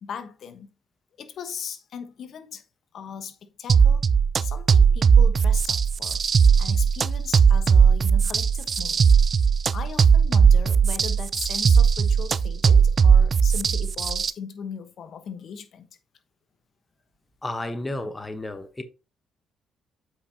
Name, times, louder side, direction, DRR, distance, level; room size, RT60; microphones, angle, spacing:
voice 1, 0.0-0.7 1.2-2.6 2.9-4.1 4.4-6.2 6.6-9.2 9.7-15.9, left 7 dB, 65° left, 1.1 m, -38 dB
sound 1, 3.7-14.3, right 6 dB, 50° right, 0.4 m, -18 dB
voice 2, 17.4-18.8, left 1 dB, 20° left, 1.0 m, -32 dB
7.8 x 5.5 x 2.8 m
supercardioid pair, 60°, 0 cm